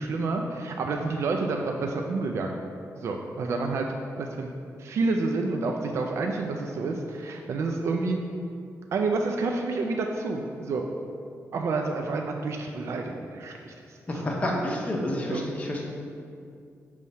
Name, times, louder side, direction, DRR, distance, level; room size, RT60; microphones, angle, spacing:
voice 1, 0.0-2.5 3.0-3.9 4.2-4.5 4.8-8.2 8.9-10.9 11.5-14.0 15.3-15.4, right 3 dB, 55° right, 2 dB, 0.4 m, -29 dB
voice 2, 14.1-15.8, left 1 dB, 25° left, -2 dB, 0.8 m, -29 dB
5.4 x 3.1 x 5.5 m, 2.4 s
wide cardioid pair, 155°, 6 cm